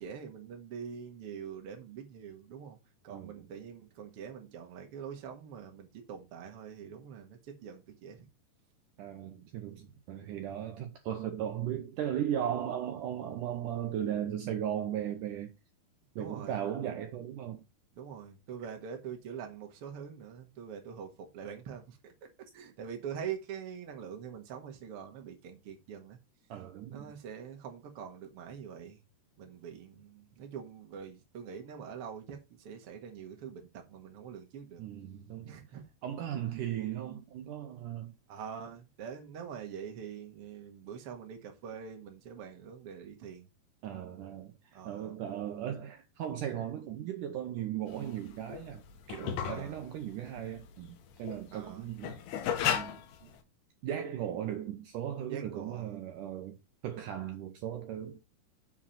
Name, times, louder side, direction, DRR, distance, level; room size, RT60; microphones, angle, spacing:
voice 1, 0.0-2.8 3.0-8.3 16.1-16.6 17.9-22.1 22.5-26.2 26.9-29.0 29.4-34.8 35.5-35.8 38.3-43.5 44.7-45.1 49.4-49.8 51.5-51.8 53.2-53.4 55.3-55.9, right 7 dB, 60° right, 1.5 m, -44 dB
voice 2, 3.1-3.5 9.0-15.5 16.1-17.6 26.5-27.1 34.8-35.6 36.0-38.1 43.8-48.8 49.1-52.2 52.6-53.0 53.8-56.6 56.8-58.2, right 10 dB, 85° right, 1.8 m, -37 dB
sound 1, 47.9-53.4, left 9 dB, 75° left, 2.9 m, -35 dB
7.2 x 4.9 x 5.7 m
omnidirectional pair, 5.0 m